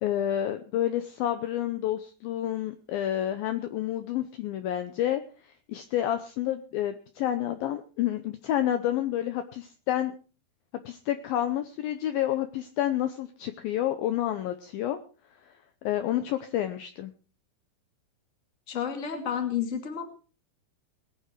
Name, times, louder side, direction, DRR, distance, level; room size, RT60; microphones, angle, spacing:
voice 1, 0.0-5.2 5.7-10.2 10.9-15.0 15.8-17.1, left 12 dB, 75° left, 10 dB, 2.3 m, -29 dB
voice 2, 18.7-20.1, left 8 dB, 25° left, 5 dB, 1.8 m, -30 dB
20.0 x 10.0 x 4.5 m, 0.37 s
omnidirectional pair, 4.9 m